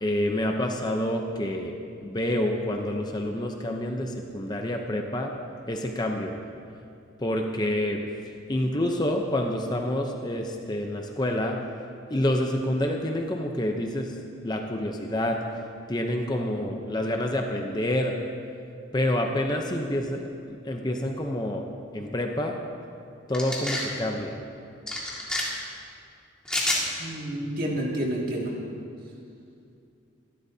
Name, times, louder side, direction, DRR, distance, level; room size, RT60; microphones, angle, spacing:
voice 1, 0.0-1.8 2.0-5.3 5.7-6.3 7.2-8.0 8.5-11.6 12.1-14.1 14.4-15.4 15.9-18.1 18.9-20.2 20.5-21.6 21.9-22.6 23.3-24.4, left 1 dB, 20° left, 3 dB, 0.7 m, -27 dB
sound 1, 23.3-23.9 24.9-25.4 26.5-26.8, left 1 dB, 5° left, 2.0 m, -28 dB
voice 2, 27.0-28.5, right 1 dB, 50° right, -3 dB, 2.3 m, -29 dB
23.5 x 12.0 x 2.8 m, 2.5 s
head